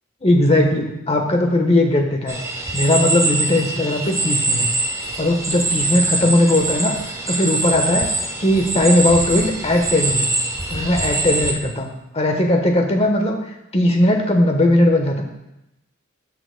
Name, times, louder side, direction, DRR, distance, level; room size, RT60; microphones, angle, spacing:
voice 1, 0.2-2.4 2.7-4.7 5.2-8.1 8.4-10.3 10.7-11.9 12.1-13.4 13.7-15.2, left 1 dB, 30° left, 3 dB, 1.1 m, -18 dB
sound 1, 2.3-11.5, right 2 dB, 15° right, 0.8 m, -23 dB
15.5 x 5.9 x 2.2 m, 0.90 s
head